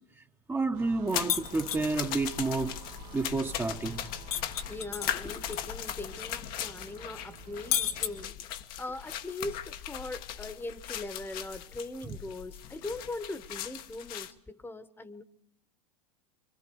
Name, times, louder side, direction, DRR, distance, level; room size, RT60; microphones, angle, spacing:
voice 1, 0.5-2.8 3.1-4.0, right 3 dB, 10° right, 1.2 m, -30 dB
sound 1, 0.7-8.3, right 4 dB, 65° right, 1.7 m, -50 dB
sound 2, 1.1-14.3, left 11 dB, 50° left, 1.3 m, -39 dB
sound 3, 1.3-1.9 4.3-5.6 5.9-6.0 7.7-8.7, left 10 dB, 70° left, 1.7 m, -31 dB
voice 2, 4.6-8.5 8.8-15.2, left 2 dB, 10° left, 1.4 m, -40 dB
26.0 x 25.5 x 4.7 m
hypercardioid pair, 95°, 19 cm